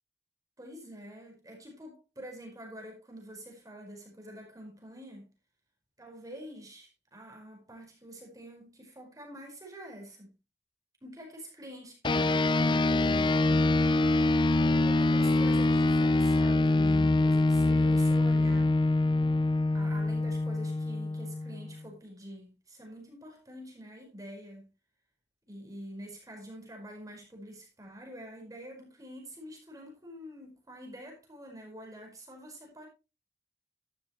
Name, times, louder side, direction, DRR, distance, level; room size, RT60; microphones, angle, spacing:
voice 1, 0.6-5.3 6.0-10.3 11.0-13.7 14.7-18.7 19.7-24.7 25.5-32.9, equal, 20° right, 5.0 m, -46 dB
sound 1, 12.0-21.8, left 2 dB, 25° left, 0.5 m, -25 dB
13.0 x 11.5 x 3.1 m
head